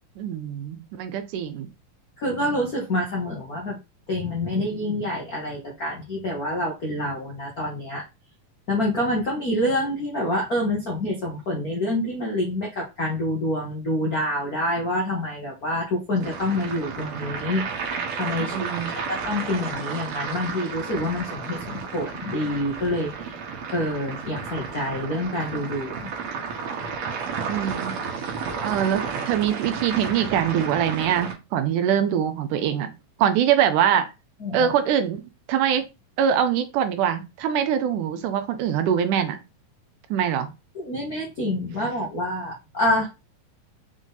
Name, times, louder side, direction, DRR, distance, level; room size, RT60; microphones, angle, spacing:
voice 1, 0.2-1.7 18.5-18.9 27.5-27.9 28.6-32.9 33.2-34.1 34.5-35.2 35.5-35.8 36.2-39.4 40.1-40.5, right 9 dB, 80° right, 8 dB, 2.1 m, -23 dB
voice 2, 2.2-3.8 4.1-8.0 8.7-17.6 18.1-18.7 19.1-23.3 23.7-26.1 34.4-34.7 40.7-43.1, left 1 dB, 60° left, -2 dB, 0.9 m, -27 dB
sound 1, 16.2-31.3, right 5 dB, 60° right, 2.2 m, -32 dB
6.2 x 3.8 x 4.0 m, 0.26 s
omnidirectional pair, 3.9 m